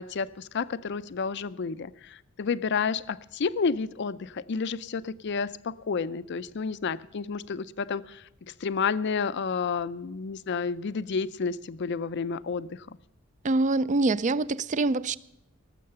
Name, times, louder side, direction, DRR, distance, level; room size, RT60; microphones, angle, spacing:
voice 1, 0.0-13.0, left 5 dB, 60° left, 0.5 m, -31 dB
voice 2, 13.4-15.2, right 3 dB, 35° right, 0.4 m, -25 dB
18.5 x 7.6 x 6.6 m
head